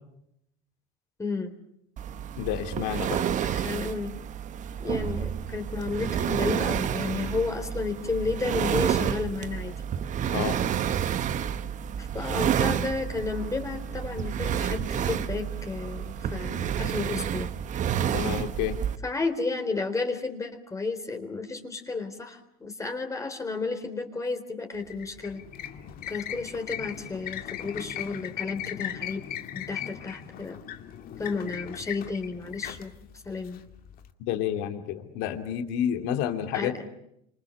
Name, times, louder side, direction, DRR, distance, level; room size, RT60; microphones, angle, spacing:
voice 1, 1.2-1.5 3.4-4.1 4.8-9.7 11.9-17.5 19.0-25.4 26.1-29.2 29.5-30.6 31.2-32.9 33.3-33.6 36.5-36.7, left 4 dB, 15° left, 5 dB, 3.8 m, -32 dB
sound 1, 2.0-19.0, right 9 dB, 45° right, 1.3 m, -29 dB
voice 2, 2.4-3.3 10.3-10.6 18.1-18.8 34.2-36.9, left 10 dB, 75° left, 6 dB, 2.8 m, -30 dB
sound 2, 24.7-34.1, left 10 dB, 55° left, 2.4 m, -38 dB
29.5 x 26.5 x 7.0 m, 0.79 s
supercardioid pair, 110°, 18 cm